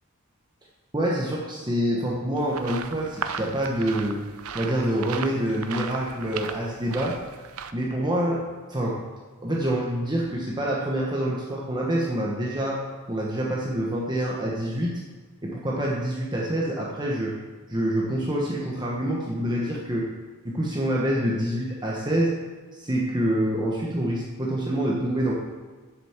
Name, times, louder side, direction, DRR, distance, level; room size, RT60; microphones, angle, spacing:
voice 1, 0.9-4.2 4.5-7.2 7.7-8.4 8.7-9.0 9.4-12.8 13.1-15.0 15.4-17.3 17.7-20.1 20.4-22.3 22.7-25.3, right 1 dB, 20° right, -3 dB, 1.1 m, -26 dB
sound 1, 2.4-7.7, right 6 dB, 75° right, 0.6 m, -36 dB
7.6 x 7.2 x 7.2 m, 1.4 s
head